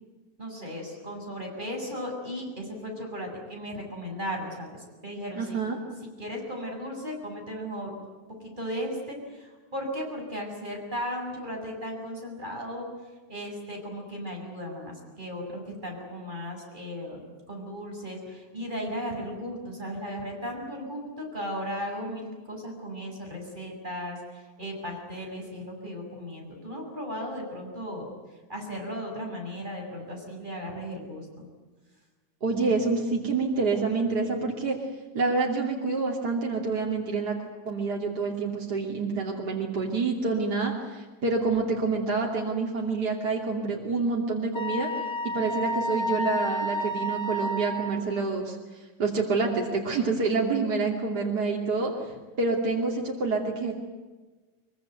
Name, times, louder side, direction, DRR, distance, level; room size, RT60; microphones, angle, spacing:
voice 1, 0.4-5.6 6.2-8.0 8.4-12.9 13.3-28.1 28.5-31.5 50.0-50.1, equal, 25° right, 0 dB, 7.1 m, -36 dB
voice 2, 5.3-5.8 32.4-34.8 35.1-37.3 37.6-44.9 45.3-48.6 49.0-51.9 52.4-53.7, right 4 dB, 65° right, -1 dB, 3.4 m, -27 dB
Wind instrument woodwind instrument, 44.5-48.0, equal, 40° left, 2.5 m, -30 dB
23.5 x 23.5 x 9.2 m, 1.3 s
omnidirectional pair, 1.9 m